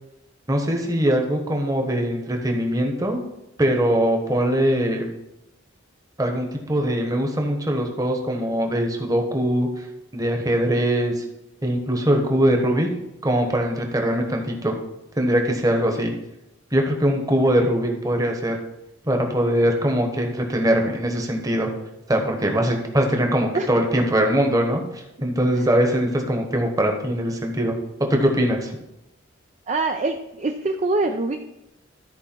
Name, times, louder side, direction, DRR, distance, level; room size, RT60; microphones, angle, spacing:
voice 1, 0.5-3.2 3.6-5.1 6.2-9.7 10.1-11.1 11.6-12.9 13.2-14.7 15.2-16.1 16.7-18.6 19.1-21.7 22.1-27.7 28.1-28.7, equal, 20° right, 3 dB, 1.1 m, -22 dB
voice 2, 29.7-31.4, right 2 dB, 35° right, 4 dB, 0.4 m, -24 dB
13.0 x 4.7 x 4.5 m, 0.91 s
head